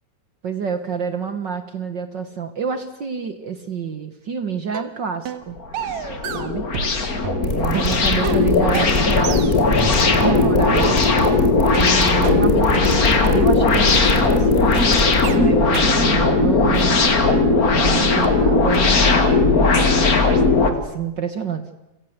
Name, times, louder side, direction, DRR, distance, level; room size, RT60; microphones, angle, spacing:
voice 1, 0.4-5.6 6.3-6.7 7.4-11.0 11.8-12.9 13.3-14.7 15.1-17.0 17.7-20.2 20.6-21.6, right 6 dB, 55° right, 11 dB, 1.3 m, -28 dB
sound 1, 4.7-4.9 5.3-5.5 5.7-7.0 7.2-11.4 11.7-11.9 12.2-12.4 12.7-12.9 13.2-13.4 13.7-13.9 14.2-14.4 14.7-14.9 15.2-15.4 15.7-15.9 16.2-16.4 16.7-17.9 18.2-18.3 18.7-18.8 19.2-19.4 19.7-19.9 20.2-20.4, right 8 dB, 70° right, 2.8 m, -29 dB
sound 2, 5.6-20.7, left 3 dB, 35° left, 1.9 m, -17 dB
sound 3, 7.4-15.2, left 1 dB, 20° left, 4.3 m, -25 dB
29.5 x 17.5 x 8.0 m, 0.94 s
omnidirectional pair, 3.5 m